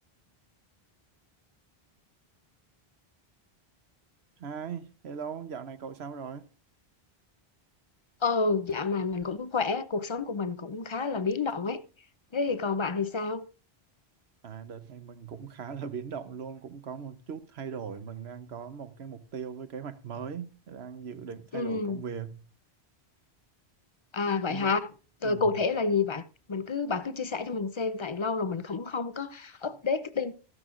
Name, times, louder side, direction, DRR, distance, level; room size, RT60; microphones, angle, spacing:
voice 1, 4.4-6.5 14.4-22.4 24.5-24.8 25.2-25.6, right 7 dB, 80° right, 1.2 m, -39 dB
voice 2, 8.2-11.8 12.3-13.4 21.5-22.0 24.1-24.9 25.2-30.3, left 4 dB, 35° left, 0.5 m, -29 dB
14.5 x 11.5 x 2.5 m
omnidirectional pair, 1.1 m